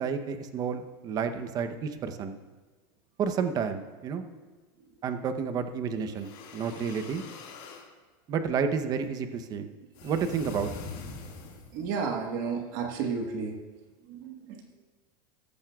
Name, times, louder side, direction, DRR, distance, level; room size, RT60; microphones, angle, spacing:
voice 1, 0.0-2.4 3.2-4.2 5.0-7.2 8.3-9.7 10.0-10.7, right 6 dB, 30° right, 8 dB, 0.8 m, -30 dB
sound 1, 6.1-7.9 9.9-11.8, left 4 dB, 55° left, 2.0 m, -43 dB
voice 2, 11.7-13.6 14.0-14.8, right 5 dB, 55° right, 2 dB, 1.4 m, -32 dB
14.5 x 13.5 x 2.4 m, 1.3 s
supercardioid pair, 155°, 13 cm